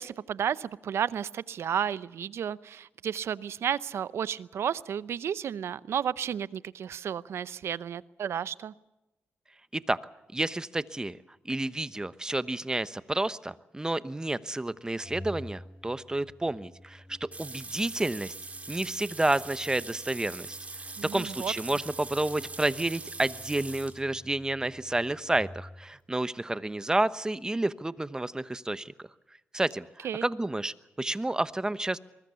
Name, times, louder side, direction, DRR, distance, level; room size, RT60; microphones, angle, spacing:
voice 1, 0.0-8.7 21.0-21.5 30.0-30.3, right 8 dB, 75° right, 17 dB, 0.7 m, -32 dB
voice 2, 10.3-11.2 11.4-18.3 18.7-20.6 21.0-29.1 29.5-32.0, right 2 dB, 15° right, 14 dB, 1.0 m, -30 dB
Organ, 15.0-26.0, left 1 dB, 25° left, 6.1 m, -50 dB
sound 1, 17.3-24.0, right 3 dB, 30° right, 4.0 m, -42 dB
24.0 x 20.5 x 7.0 m, 0.99 s
cardioid pair, 75°, 4 cm